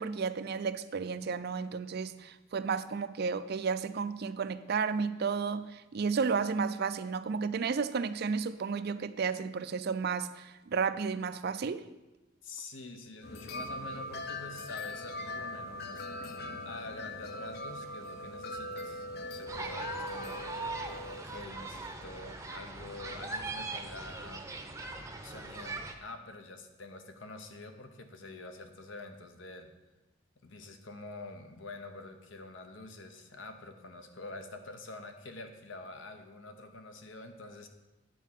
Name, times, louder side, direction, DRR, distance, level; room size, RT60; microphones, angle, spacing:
voice 1, 0.0-11.8, right 5 dB, 50° right, 12 dB, 0.4 m, -32 dB
voice 2, 12.4-16.1 16.6-20.5 21.1-24.4 25.2-29.7 30.4-37.7, left 2 dB, 70° left, 6 dB, 1.0 m, -46 dB
sound 1, 13.2-21.2, left 1 dB, 50° left, 0.6 m, -41 dB
sound 2, 19.5-25.9, right 3 dB, 15° right, 0.7 m, -40 dB
9.1 x 4.7 x 7.4 m, 1.0 s
head